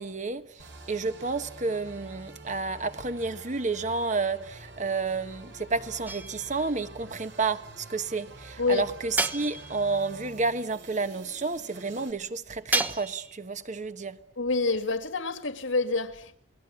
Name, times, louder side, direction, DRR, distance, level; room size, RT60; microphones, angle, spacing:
voice 1, 0.0-14.2, right 3 dB, 40° right, 1.4 m, -31 dB
sound 1, 0.6-12.1, right 2 dB, 70° right, 5.5 m, -47 dB
sound 2, 6.1-6.7 9.2-10.0 12.7-13.4, right 2 dB, 10° right, 1.2 m, -30 dB
voice 2, 14.4-16.4, left 3 dB, 90° left, 2.5 m, -27 dB
28.5 x 19.5 x 8.4 m
head